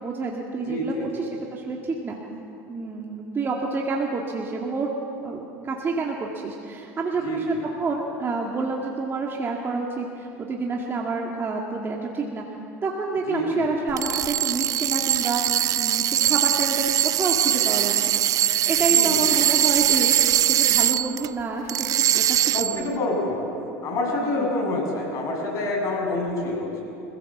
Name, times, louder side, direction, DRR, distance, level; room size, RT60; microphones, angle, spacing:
voice 1, 0.0-2.2 2.7-4.9 5.2-12.6 12.8-15.4 15.8-23.0 24.2-24.5, right 4 dB, 30° right, -1 dB, 2.3 m, -29 dB
voice 2, 0.6-1.3 7.2-7.6 13.3-13.7 18.9-19.3 22.5-23.5 23.8-26.8, left 2 dB, 45° left, 0 dB, 7.1 m, -27 dB
sound 1, 13.9-21.3 21.7-22.9, right 12 dB, 50° right, 0.6 m, -21 dB
25.5 x 16.0 x 7.4 m, 2.8 s
supercardioid pair, 100°, 8 cm